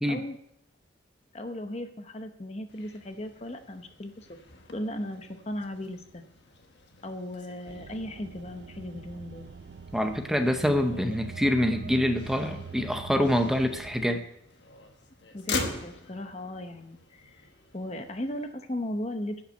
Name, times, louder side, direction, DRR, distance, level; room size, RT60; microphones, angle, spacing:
voice 1, 1.3-4.4 4.7-6.2 7.0-9.5 15.3-17.5 17.7-19.4, left 1 dB, 35° left, 7 dB, 0.8 m, -37 dB
Motor vehicle (road), 2.7-18.5, left 3 dB, 65° left, 1.3 m, -43 dB
sound 1, 7.7-14.1, right 5 dB, 60° right, 0.4 m, -43 dB
voice 2, 9.9-14.2, left 1 dB, ahead, 6 dB, 0.7 m, -26 dB
11.0 x 5.8 x 7.8 m, 0.77 s
head